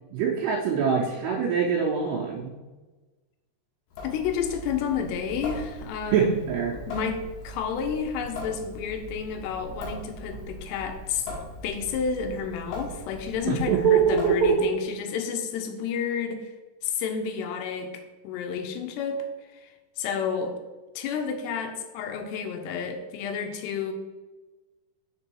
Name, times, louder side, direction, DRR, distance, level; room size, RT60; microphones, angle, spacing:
voice 1, 0.1-2.6 6.1-6.7 13.5-14.7, right 6 dB, 80° right, -3 dB, 2.8 m, -23 dB
Water tap faucet / Sink (filling or washing) / Drip, 3.9-14.8, left 1 dB, 65° left, 2.6 m, -40 dB
voice 2, 4.0-6.3 6.7-11.3 11.6-16.5 16.8-20.6 21.0-23.9, left 6 dB, 85° left, 6 dB, 2.6 m, -31 dB
6.7 x 3.8 x 4.5 m, 1.2 s
omnidirectional pair, 5.1 m